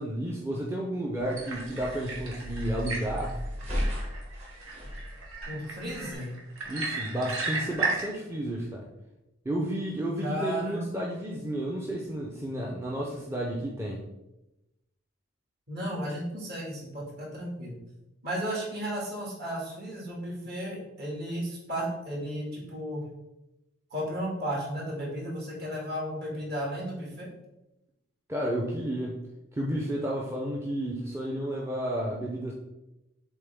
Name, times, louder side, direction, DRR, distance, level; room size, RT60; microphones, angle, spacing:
voice 1, 0.0-3.4 6.7-8.8 9.4-14.0 28.3-29.2 29.5-32.5, right 1 dB, 10° right, -3 dB, 0.6 m, -32 dB
sound 1, 1.2-6.1, equal, 30° right, 1.2 m, -36 dB
sound 2, 1.3-8.1, right 3 dB, 75° right, 1.6 m, -35 dB
voice 2, 5.5-6.3 10.2-10.8 15.7-17.8 18.2-23.1 23.9-27.3, equal, 50° right, -3 dB, 2.1 m, -34 dB
7.0 x 4.0 x 3.5 m, 0.94 s
head